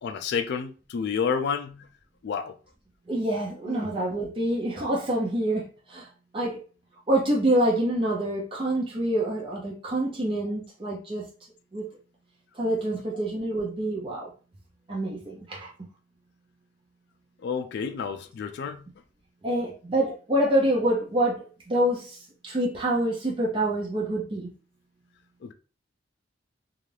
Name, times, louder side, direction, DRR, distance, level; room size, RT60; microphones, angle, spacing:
voice 1, 0.0-1.9 2.2-2.6 3.7-3.9 17.4-18.8 20.1-20.2 25.4-25.5, left 6 dB, 60° left, 0.3 m, -30 dB
voice 2, 3.1-6.1 6.3-6.6 7.1-11.2 11.7-11.9 12.6-14.3 14.9-15.7 19.4-22.2 22.4-24.5, right 1 dB, 25° right, 0.5 m, -26 dB
2.6 x 2.3 x 3.2 m
head